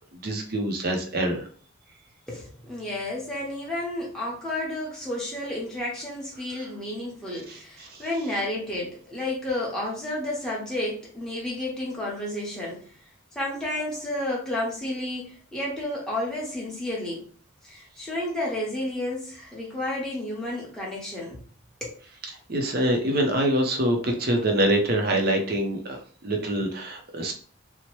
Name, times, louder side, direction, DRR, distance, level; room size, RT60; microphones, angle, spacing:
voice 1, 0.1-1.4 7.5-7.6 7.9-8.0 22.5-27.3, right 1 dB, 45° right, 3 dB, 0.5 m, -25 dB
voice 2, 2.3-12.9 13.3-17.2 17.6-21.4 21.8-22.0, left 1 dB, 5° left, -5 dB, 0.9 m, -31 dB
2.9 x 2.0 x 3.0 m, 0.43 s
head